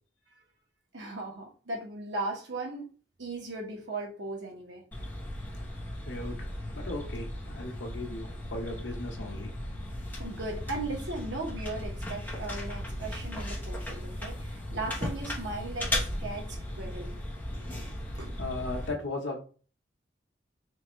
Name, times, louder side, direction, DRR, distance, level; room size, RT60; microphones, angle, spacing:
voice 1, 0.9-2.9 3.2-4.8 10.2-17.1 18.2-18.3, right 2 dB, 80° right, -1 dB, 1.4 m, -37 dB
sound 1, 4.9-18.9, left 1 dB, 10° left, 1.0 m, -36 dB
voice 2, 6.1-9.5 18.4-19.5, left 2 dB, 80° left, 1 dB, 1.1 m, -37 dB
4.3 x 2.5 x 3.1 m, 0.39 s
head